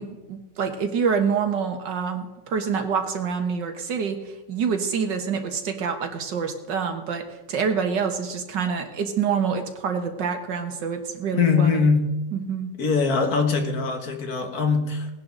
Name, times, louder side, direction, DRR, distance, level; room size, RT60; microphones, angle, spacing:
voice 1, 0.0-11.9 12.3-12.7, right 6 dB, 80° right, 2.0 m, -27 dB
voice 2, 11.3-12.2 12.8-15.1, left 5 dB, 60° left, 1.8 m, -22 dB
18.5 x 10.5 x 3.9 m
omnidirectional pair, 1.9 m